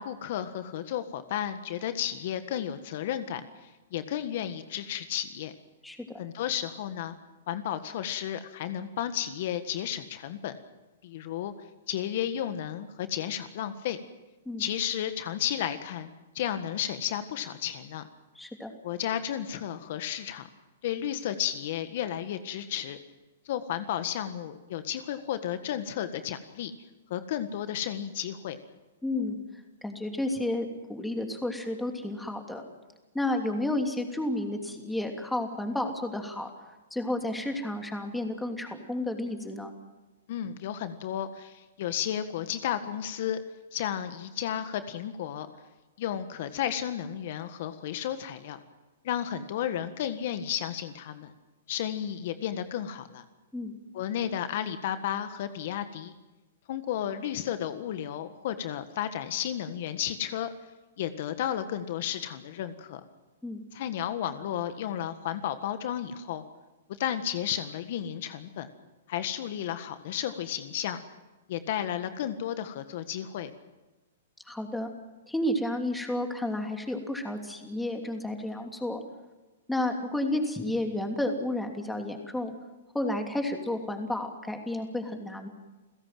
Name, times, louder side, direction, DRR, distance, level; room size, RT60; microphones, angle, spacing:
voice 1, 0.0-5.5 6.2-7.2 7.5-10.5 11.0-11.5 11.9-14.0 14.6-16.1 16.3-18.1 18.8-20.5 20.8-23.0 23.4-26.7 27.1-28.6 40.3-43.4 43.7-45.5 46.0-48.6 49.0-51.3 51.7-53.2 53.9-56.1 56.7-60.5 61.0-63.0 63.7-66.4 67.0-68.7 69.1-71.0 71.5-73.5, left 10 dB, 55° left, 10 dB, 1.6 m, -33 dB
voice 2, 18.3-18.7 29.0-29.4 29.8-32.6 33.1-36.5 36.9-39.7 53.5-53.8 63.4-63.6 74.5-74.9 75.3-79.0 79.7-82.5 82.9-85.5, left 1 dB, 5° left, 4 dB, 3.0 m, -31 dB
30.0 x 16.5 x 7.7 m, 1.1 s
hypercardioid pair, 135°, 0 cm